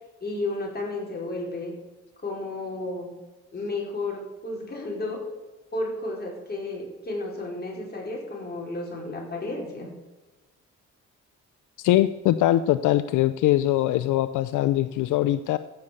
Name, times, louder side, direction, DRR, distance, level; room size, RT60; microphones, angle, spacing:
voice 1, 0.2-1.7 2.2-3.1 3.5-5.2 5.7-9.9, left 2 dB, 30° left, -2 dB, 5.0 m, -32 dB
voice 2, 11.8-15.6, left 14 dB, 80° left, 13 dB, 0.5 m, -22 dB
15.5 x 6.6 x 7.0 m, 1.1 s
cardioid pair, 90°, 30 cm